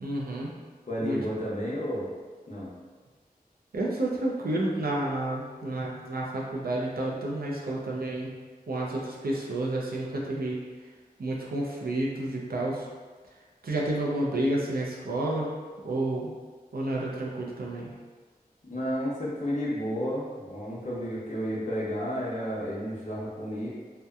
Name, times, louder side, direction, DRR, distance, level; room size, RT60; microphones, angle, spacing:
voice 1, 0.0-0.5 1.0-1.2 3.7-8.3 8.7-10.6 11.2-12.9 13.6-15.5 15.8-16.3 16.7-17.9, right 1 dB, 75° right, -3 dB, 0.5 m, -30 dB
voice 2, 0.9-2.1 2.5-2.7 18.6-23.7, equal, 50° left, -8 dB, 0.8 m, -32 dB
2.7 x 2.1 x 2.3 m, 1.5 s
wide cardioid pair, 45°, 16 cm